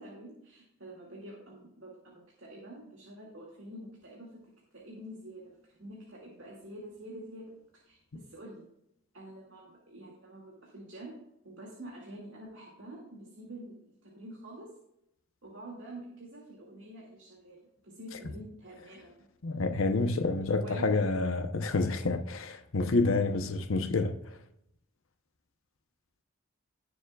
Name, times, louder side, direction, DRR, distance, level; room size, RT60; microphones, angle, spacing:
voice 1, 0.0-4.4 4.7-8.6 9.1-11.1 11.4-14.7 15.4-19.3 20.6-20.8, right 1 dB, 65° right, 2.2 m, -47 dB
voice 2, 19.4-24.2, left 3 dB, 80° left, 0.8 m, -28 dB
18.0 x 7.1 x 2.4 m
head